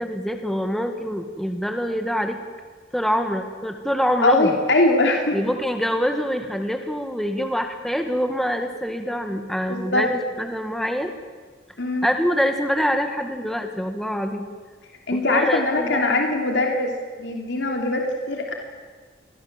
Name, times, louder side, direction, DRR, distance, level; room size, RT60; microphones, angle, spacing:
voice 1, 0.0-2.4 2.9-4.6 5.3-11.1 12.0-14.5 15.1-16.1, equal, ahead, 5 dB, 1.7 m, -25 dB
voice 2, 4.2-5.4 9.7-10.1 11.8-12.1 15.1-16.9 17.2-18.5, left 2 dB, 85° left, 2 dB, 3.1 m, -21 dB
28.5 x 22.0 x 7.5 m, 1.5 s
head